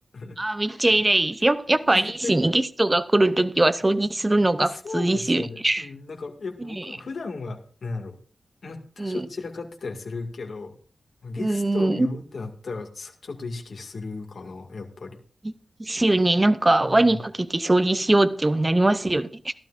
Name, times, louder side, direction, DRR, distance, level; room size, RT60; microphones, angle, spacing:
voice 1, 0.4-5.9 6.8-6.9 9.0-9.2 11.4-12.1 15.8-19.5, right 2 dB, 20° right, 0.6 m, -21 dB
voice 2, 1.9-2.3 4.6-8.2 8.6-10.7 11.2-15.2 16.8-17.2, left 3 dB, 65° left, 2.1 m, -35 dB
16.5 x 12.5 x 2.6 m
wide cardioid pair, 100°, 0 cm